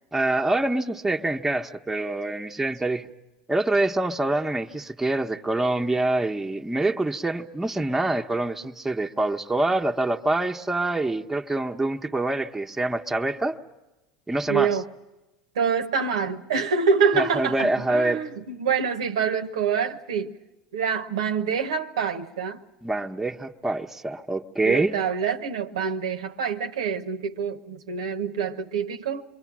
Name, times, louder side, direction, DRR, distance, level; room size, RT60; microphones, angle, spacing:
voice 1, 0.1-3.1 3.5-13.6 14.3-14.8 17.1-18.2 22.8-25.0, right 2 dB, 10° right, 1.0 m, -25 dB
voice 2, 14.5-14.8 15.5-20.3 20.7-22.6 24.6-29.2, right 6 dB, 75° right, 0.9 m, -26 dB
27.5 x 23.5 x 6.2 m
hypercardioid pair, 75°, 3 cm